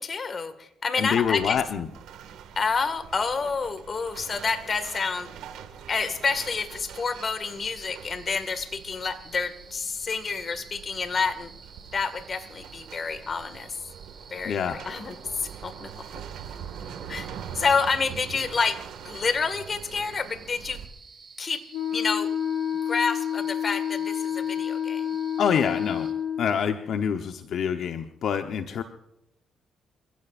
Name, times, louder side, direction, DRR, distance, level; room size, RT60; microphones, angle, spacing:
voice 1, 0.0-1.6 2.6-5.3 5.9-11.5 11.9-13.7 14.3-15.9 17.1-17.3 17.5-20.8 21.4-21.6 21.9-22.3 22.9-25.1, left 5 dB, 40° left, 9 dB, 2.0 m, -28 dB
voice 2, 1.0-1.9 14.4-14.8 25.4-26.1 26.4-28.8, left 7 dB, 65° left, 6 dB, 1.0 m, -26 dB
sound 1, 1.2-20.9, right 8 dB, 85° right, 2.0 m, -44 dB
sound 2, 6.2-26.1, right 5 dB, 35° right, 6.2 m, -51 dB
Wind instrument woodwind instrument, 21.7-26.6, left 8 dB, 85° left, 5.4 m, -29 dB
29.5 x 15.5 x 2.6 m, 0.84 s
cardioid pair, 90°, 0 cm